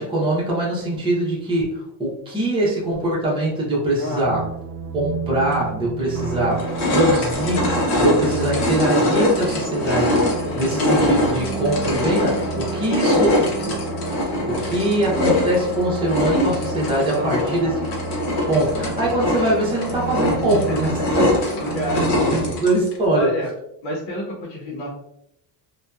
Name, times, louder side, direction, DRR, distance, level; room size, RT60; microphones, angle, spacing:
voice 1, 0.0-4.4 4.9-6.6 6.9-13.9 14.5-17.7 18.5-20.9 21.2-21.3 21.6-23.3, right 1 dB, 10° right, -6 dB, 0.7 m, -23 dB
voice 2, 4.0-4.4 10.4-11.3 17.1-17.8 20.3-20.9 21.7-22.5 23.1-23.5 23.8-24.9, left 1 dB, 90° left, -3 dB, 0.8 m, -30 dB
sound 1, 4.2-22.5, right 5 dB, 80° right, 0.6 m, -32 dB
sound 2, 5.5-5.6 6.2-23.0, left 1 dB, 60° left, 0.9 m, -23 dB
2.7 x 2.2 x 2.3 m, 0.79 s
cardioid pair, 150°, 44 cm